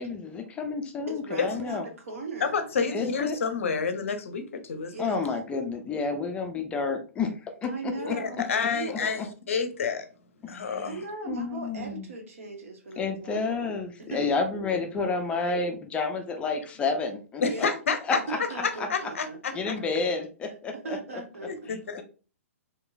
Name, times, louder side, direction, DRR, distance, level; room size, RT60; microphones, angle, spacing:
voice 1, 0.0-1.8 2.9-3.4 5.0-8.2 8.9-9.3 10.4-12.1 13.0-17.7 18.1-18.4 18.8-18.9 19.5-21.0, left 4 dB, 15° left, 0.4 m, -30 dB
voice 2, 1.1-2.9 4.9-5.2 7.6-9.3 10.8-13.7 14.1-14.3 17.4-17.7 18.3-19.8 20.7-21.7, right 3 dB, 65° right, 0.9 m, -39 dB
voice 3, 2.4-5.0 8.0-10.1 10.5-10.9 17.4-18.0 18.6-19.2 19.7-19.8 21.4-22.0, left 5 dB, 60° left, 0.6 m, -29 dB
2.9 x 2.9 x 2.3 m
figure-of-eight pair, 120°, 8 cm